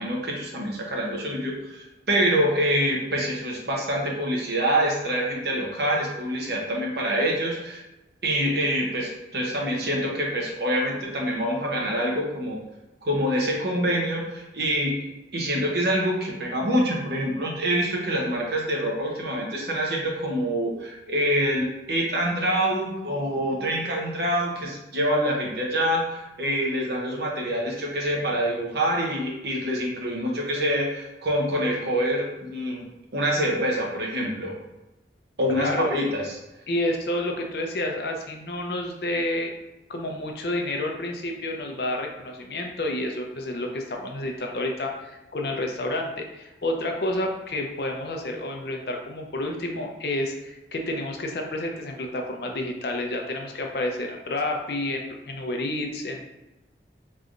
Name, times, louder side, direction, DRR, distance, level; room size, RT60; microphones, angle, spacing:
voice 1, 0.0-7.8 8.2-12.6 13.0-15.0 15.3-32.8 33.1-34.5 35.4-36.4, equal, 65° right, -2 dB, 0.9 m, -26 dB
voice 2, 35.6-35.9 36.7-39.5 39.9-56.3, left 1 dB, 65° left, 2 dB, 0.6 m, -29 dB
3.9 x 3.2 x 2.5 m, 1.0 s
head